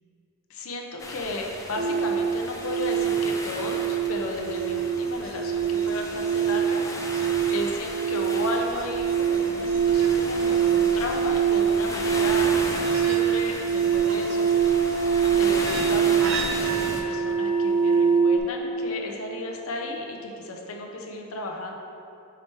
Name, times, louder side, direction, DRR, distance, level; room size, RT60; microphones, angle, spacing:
voice 1, 0.5-12.4 12.9-14.5 15.4-21.7, left 2 dB, 80° left, 1 dB, 0.7 m, -34 dB
sound 1, 1.0-17.0, left 2 dB, 15° left, 0.4 m, -36 dB
sound 2, 1.8-18.4, right 7 dB, 60° right, 0.4 m, -24 dB
5.0 x 4.5 x 4.5 m, 2.9 s
head